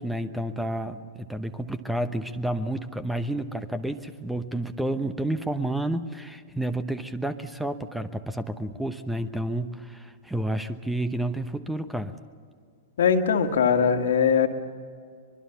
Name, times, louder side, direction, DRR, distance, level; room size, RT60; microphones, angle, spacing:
voice 1, 0.0-12.1, right 1 dB, 5° right, 12 dB, 1.0 m, -30 dB
voice 2, 13.0-14.5, left 6 dB, 65° left, 5 dB, 1.9 m, -21 dB
24.0 x 22.5 x 7.0 m, 2.1 s
figure-of-eight pair, 105°, 0 cm